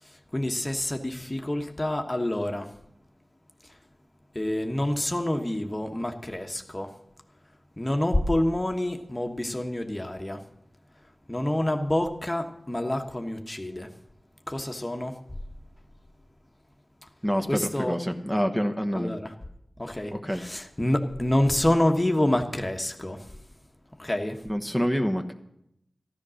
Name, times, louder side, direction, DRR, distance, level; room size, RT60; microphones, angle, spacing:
voice 1, 0.0-2.7 3.7-3.8 4.3-6.9 7.8-10.4 11.3-13.9 14.5-15.2 17.5-18.0 18.9-19.3 19.8-23.3 24.0-24.4, left 1 dB, 25° left, 1.2 m, -27 dB
voice 2, 17.2-19.1 20.1-20.4 24.4-25.3, equal, 10° right, 1.1 m, -27 dB
14.0 x 10.5 x 6.4 m
wide cardioid pair, 50°, 0 cm